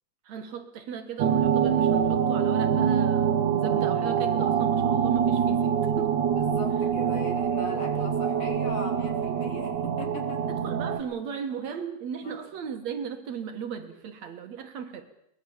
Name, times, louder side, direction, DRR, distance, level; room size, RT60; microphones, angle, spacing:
voice 1, 0.2-6.1 10.5-15.1, right 7 dB, 65° right, 7 dB, 2.8 m, -37 dB
sound 1, 1.2-11.0, right 8 dB, 90° right, 3.0 m, -25 dB
voice 2, 6.3-10.4 12.2-12.4, left 2 dB, 55° left, 4 dB, 4.4 m, -39 dB
24.0 x 20.0 x 7.3 m, 0.79 s
omnidirectional pair, 3.4 m